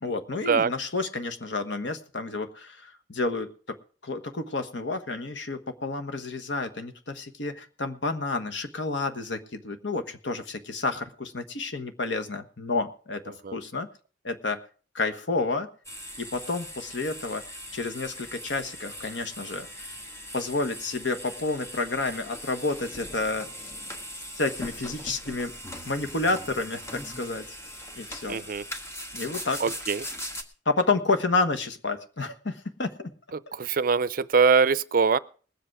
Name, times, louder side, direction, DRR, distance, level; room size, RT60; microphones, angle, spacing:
voice 1, 0.0-3.8 4.0-13.9 14.2-14.6 14.9-15.7 16.2-17.4 17.7-19.9 20.3-23.5 24.4-25.5 25.8-27.6 27.9-28.4 29.1-29.6 30.6-33.1 33.5-33.6, left 3 dB, 70° left, 1.4 m, -30 dB
sound 1, 15.8-30.4, equal, 15° left, 1.5 m, -40 dB
voice 2, 28.3-28.6 29.6-30.1 33.6-35.2, right 5 dB, 50° right, 0.5 m, -22 dB
20.5 x 8.0 x 4.8 m
head